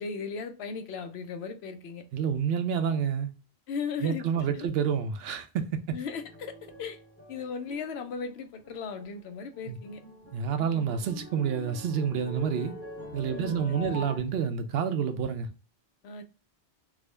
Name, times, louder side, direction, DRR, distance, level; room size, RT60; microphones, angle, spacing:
voice 1, 0.0-2.0 3.7-4.3 4.5-4.7 5.9-7.0 7.3-10.0 13.3-14.0 16.0-16.2, left 5 dB, 80° left, 0.8 m, -37 dB
voice 2, 2.1-3.3 4.0-5.8 9.7-9.8 10.3-12.7 13.1-15.5, right 7 dB, 70° right, 0.8 m, -28 dB
sound 1, 6.1-8.4 8.6-9.2 9.5-14.2, left 1 dB, 10° left, 0.8 m, -44 dB
3.6 x 2.1 x 3.2 m
omnidirectional pair, 1.1 m